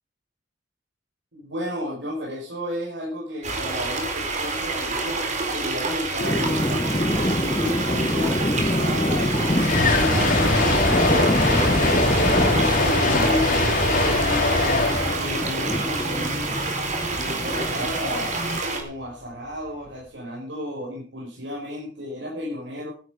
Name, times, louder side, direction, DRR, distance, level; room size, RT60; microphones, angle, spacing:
voice 1, 1.3-5.2 5.5-7.1 7.4-12.0 12.3-14.6 15.1-16.6 17.2-18.3 18.7-22.9, equal, 85° right, -4 dB, 5.8 m, -33 dB
sound 1, 3.4-18.8, right 3 dB, 40° right, 4.4 m, -28 dB
sound 2, 6.2-18.6, left 1 dB, 25° left, 1.0 m, -26 dB
sound 3, 8.7-16.8, left 2 dB, 50° left, 5.4 m, -22 dB
15.5 x 12.5 x 5.2 m, 0.39 s
head